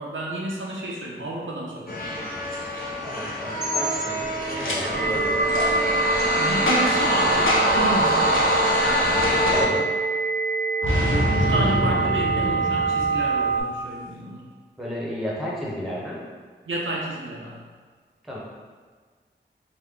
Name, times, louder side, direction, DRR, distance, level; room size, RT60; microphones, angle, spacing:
voice 1, 0.0-2.2 4.9-5.1 6.4-8.4 11.1-14.4 16.7-17.6, right 1 dB, 80° right, -3 dB, 0.6 m, -30 dB
sound 1, 1.9-9.7, left 1 dB, 50° left, 0.7 m, -24 dB
voice 2, 3.0-5.3 9.5-9.9 14.8-16.2 18.2-18.4, equal, ahead, -5 dB, 1.0 m, -32 dB
Boom, 4.6-4.8 5.5-5.7 6.7-7.1 7.5-7.8 8.3-8.5 9.2-9.6 10.8-13.5, left 1 dB, 85° left, 0.6 m, -26 dB
sound 2, 4.9-13.6, right 5 dB, 40° right, 0.8 m, -25 dB
3.3 x 2.1 x 3.6 m, 1.5 s
cardioid pair, 40°, 20 cm